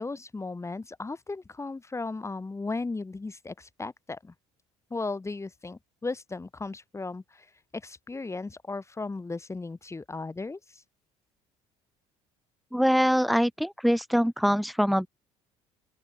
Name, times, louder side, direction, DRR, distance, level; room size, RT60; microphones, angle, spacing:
voice 1, 0.0-4.3 4.9-7.5 7.7-10.8, left 3 dB, 20° left, 3.8 m, -36 dB
voice 2, 12.7-15.1, equal, ahead, 5.3 m, -23 dB
open air
supercardioid pair, 80°, 14 cm